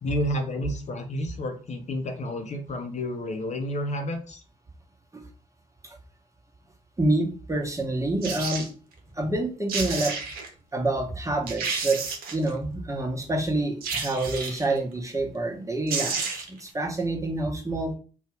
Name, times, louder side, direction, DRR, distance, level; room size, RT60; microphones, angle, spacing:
voice 1, 0.0-4.4, left 1 dB, 45° left, 5 dB, 0.7 m, -30 dB
voice 2, 7.0-8.7 9.1-10.1 10.7-12.0 12.3-18.0, right 2 dB, 20° right, 1 dB, 1.0 m, -27 dB
sound 1, 8.2-8.7 9.4-9.5 9.7-10.5 11.0-11.1 11.5-12.5 13.8-14.7 15.6-15.7 15.9-16.6 16.9-17.0, right 5 dB, 65° right, 0.7 m, -31 dB
2.7 x 2.3 x 3.2 m, 0.36 s
hypercardioid pair, 45°, 16 cm